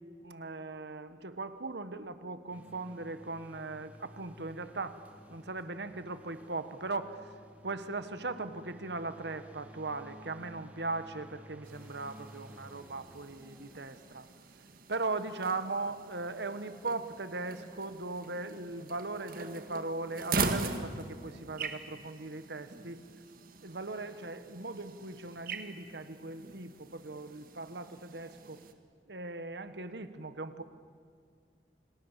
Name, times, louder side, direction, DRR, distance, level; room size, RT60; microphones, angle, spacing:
voice 1, 0.2-5.0 5.3-7.3 7.6-14.3 14.9-23.1 23.6-28.6 29.1-30.6, right 3 dB, 75° right, 11 dB, 1.4 m, -39 dB
sound 1, 2.5-14.8 16.5-16.6, equal, 10° right, 2.5 m, -55 dB
sound 2, 11.6-28.7, right 4 dB, 55° right, 1.8 m, -41 dB
29.0 x 26.5 x 7.5 m, 2.1 s
head